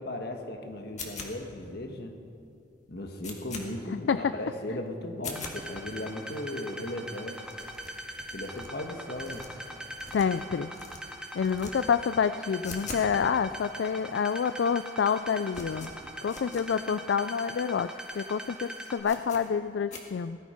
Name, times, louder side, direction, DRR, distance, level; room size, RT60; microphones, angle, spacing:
voice 1, 0.0-2.1 2.9-7.4 8.3-9.4, left 1 dB, 65° left, 4 dB, 1.5 m, -37 dB
sound 1, 1.0-1.6 2.1-2.2 2.5-2.6 2.9-3.7 4.1-4.2 4.5-4.7 5.1-5.6 6.1-6.2 6.4-6.5 6.7-6.8 7.1-7.2 7.4-8.7 9.1-10.5 10.7-11.0 11.4-11.7 12.0-13.1 13.4-13.5 14.1-14.2 14.4-14.8 15.0-16.7 17.1-17.2 17.4-17.5 18.0-18.1 18.4-18.5 19.0-19.4 19.9-20.0, left 4 dB, 45° left, 1.9 m, -42 dB
sound 2, 5.3-19.0, equal, 5° right, 1.3 m, -41 dB
voice 2, 10.1-10.7 11.3-15.9 16.2-20.4, left 6 dB, 80° left, 12 dB, 0.4 m, -28 dB
18.0 x 12.0 x 5.2 m, 2.5 s
head